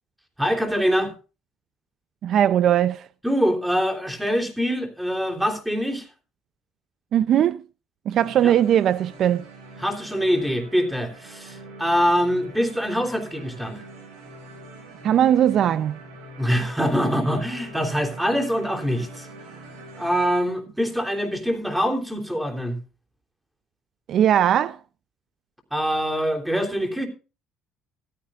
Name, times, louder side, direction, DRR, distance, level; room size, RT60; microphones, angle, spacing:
voice 1, 0.4-1.1 3.2-6.1 8.4-8.5 9.8-13.8 16.4-19.3 20.0-22.8 25.7-27.1, equal, 5° right, 3.3 m, -24 dB
voice 2, 2.2-3.1 7.1-7.6 8.1-9.4 15.0-16.0 24.1-24.8, right 10 dB, 55° right, 0.5 m, -19 dB
sound 1, 8.1-20.3, right 2 dB, 85° right, 5.5 m, -44 dB
15.5 x 14.5 x 2.5 m
cardioid pair, 100°, 0 cm